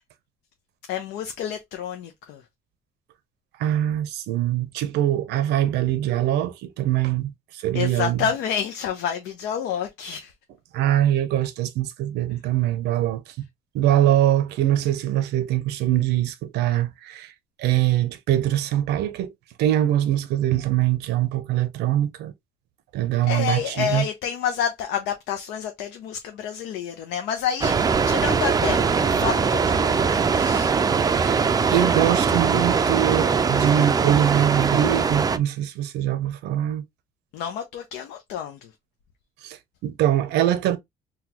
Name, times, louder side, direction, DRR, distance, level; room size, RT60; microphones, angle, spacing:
voice 1, 0.9-2.4 7.7-10.3 23.2-30.7 37.3-38.7, left 8 dB, 85° left, 0.6 m, -29 dB
voice 2, 3.6-8.2 10.7-13.2 13.7-17.3 17.6-19.3 19.6-22.3 22.9-24.0 31.1-31.4 31.7-36.8 39.4-39.6 39.8-40.8, right 12 dB, 85° right, 0.6 m, -23 dB
sound 1, 27.6-35.4, right 5 dB, 20° right, 0.4 m, -21 dB
3.9 x 2.3 x 2.8 m
cardioid pair, 110°, 17 cm